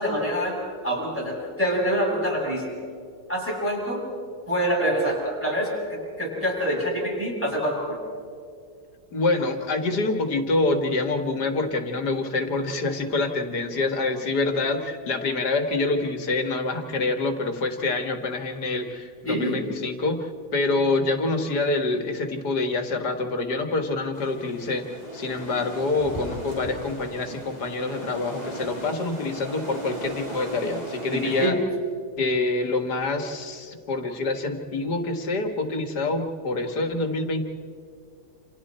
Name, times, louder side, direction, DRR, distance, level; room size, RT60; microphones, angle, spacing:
voice 1, 0.0-2.8 3.3-4.1 4.5-8.0 19.3-19.6 31.1-31.6, equal, 5° left, -3 dB, 7.2 m, -26 dB
voice 2, 9.1-31.6 32.2-37.4, left 3 dB, 90° left, 5 dB, 2.4 m, -26 dB
sound 1, 24.1-31.5, equal, 25° right, 2.9 m, -37 dB
28.5 x 28.0 x 4.4 m, 2.3 s
omnidirectional pair, 1.7 m